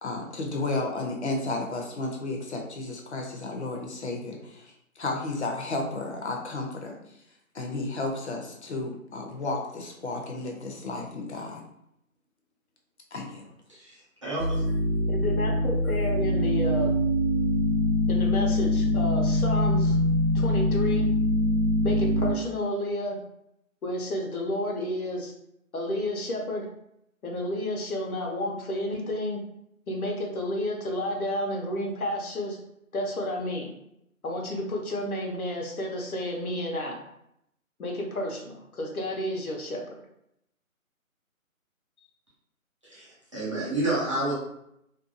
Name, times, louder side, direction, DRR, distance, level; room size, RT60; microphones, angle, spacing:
voice 1, 0.0-7.0 7.5-11.6 13.1-13.4, left 2 dB, 50° left, 1 dB, 0.6 m, -33 dB
voice 2, 13.7-14.6 15.8-15.9 42.8-44.3, right 2 dB, 20° right, -10 dB, 0.7 m, -30 dB
sound 1, 14.4-22.3, left 1 dB, 70° right, 0.8 m, -24 dB
voice 3, 15.1-17.0 18.1-20.0 20.3-21.1 21.8-23.2 23.8-25.3 25.7-26.7 27.2-29.4 29.9-32.6 32.9-33.7 34.2-37.0 37.8-40.0, left 1 dB, 90° left, 0 dB, 0.9 m, -31 dB
2.6 x 2.3 x 2.5 m, 0.78 s
figure-of-eight pair, 160°, 42 cm